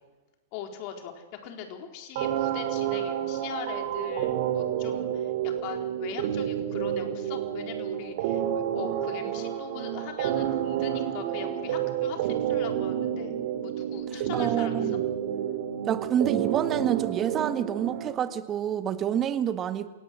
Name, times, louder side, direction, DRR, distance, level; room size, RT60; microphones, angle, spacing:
voice 1, 0.5-13.4 13.6-14.9, left 8 dB, 45° left, 4 dB, 4.2 m, -41 dB
sound 1, 2.2-18.2, right 10 dB, 55° right, 3.1 m, -29 dB
voice 2, 14.1-15.0 15.9-19.9, right 9 dB, 30° right, 10 dB, 1.7 m, -28 dB
28.0 x 18.0 x 6.4 m, 1.2 s
hypercardioid pair, 105°, 0 cm